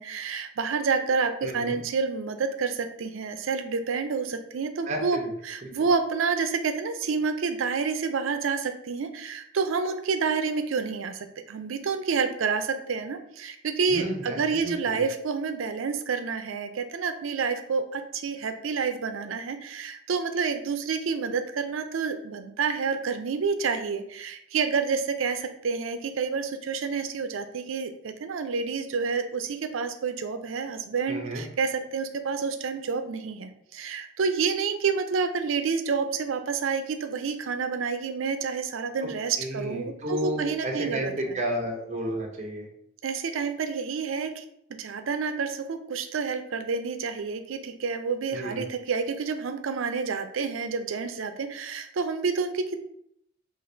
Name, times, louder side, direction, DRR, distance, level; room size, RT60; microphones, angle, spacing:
voice 1, 0.0-5.2 5.4-41.3 43.0-44.4 44.8-52.8, right 5 dB, 90° right, 8 dB, 0.5 m, -29 dB
voice 2, 1.4-1.8 4.8-5.3 5.6-5.7 13.9-15.0 31.1-31.4 39.0-39.1 39.4-42.7 48.3-48.6, right 1 dB, 35° right, 2 dB, 0.8 m, -32 dB
3.9 x 2.5 x 4.3 m, 0.71 s
head